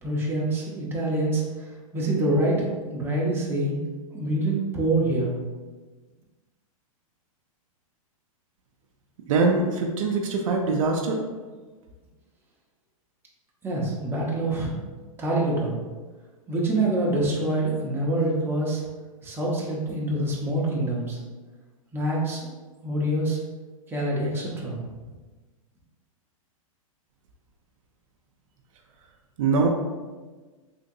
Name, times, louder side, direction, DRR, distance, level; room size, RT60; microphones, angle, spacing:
voice 1, 0.0-3.8 4.1-5.4 13.6-14.7 15.2-15.8 16.5-18.8 19.2-21.2 21.9-22.4 22.8-23.4 23.9-24.8, right 1 dB, 10° right, -4 dB, 0.7 m, -26 dB
voice 2, 9.3-11.2 29.4-29.7, right 4 dB, 65° right, 2 dB, 0.5 m, -23 dB
3.5 x 2.8 x 2.7 m, 1.3 s
hypercardioid pair, 125°, 18 cm